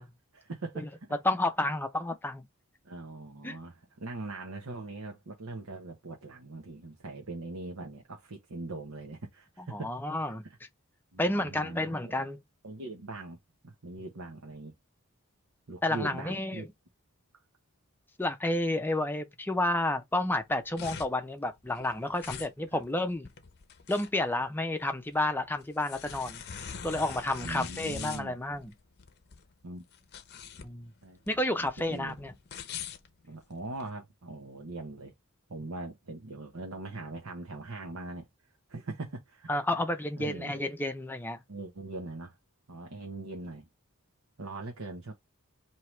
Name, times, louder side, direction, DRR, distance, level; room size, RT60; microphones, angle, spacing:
voice 1, 0.0-1.1 2.8-9.9 10.4-10.6 11.1-12.1 12.6-13.4 13.6-14.7 15.7-16.7 22.7-22.8 27.4-28.3 29.6-29.8 31.0-31.2 31.6-32.2 33.2-35.1 35.5-38.3 38.7-39.5 40.2-40.6 41.5-42.4 42.7-43.7 44.4-45.1, right 2 dB, 80° right, 0.9 m, -41 dB
voice 2, 1.2-2.4 3.4-3.6 9.7-10.4 11.2-12.4 15.8-16.7 18.2-23.3 23.9-26.4 26.8-28.7 30.6-30.9 31.3-32.3 39.5-41.4, left 1 dB, 10° left, 0.5 m, -30 dB
sound 1, 20.3-33.9, left 7 dB, 50° left, 0.7 m, -44 dB
4.6 x 2.9 x 3.1 m
head